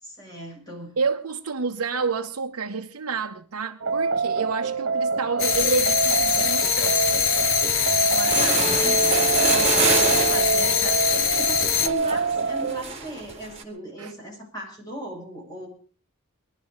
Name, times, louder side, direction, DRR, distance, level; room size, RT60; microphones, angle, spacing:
voice 1, 0.0-1.0 8.1-9.4 9.7-15.7, right 1 dB, 15° left, 7.7 m, -38 dB
voice 2, 1.0-7.0 9.5-10.0 14.0-14.1, right 4 dB, 70° right, 0.9 m, -29 dB
sound 1, 3.8-12.8, right 4 dB, 55° right, 1.8 m, -25 dB
sound 2, 5.4-11.9, left 8 dB, 65° left, 1.2 m, -23 dB
sound 3, 7.8-7.9 8.2-13.6, right 4 dB, 25° right, 2.6 m, -28 dB
21.5 x 11.5 x 5.2 m
head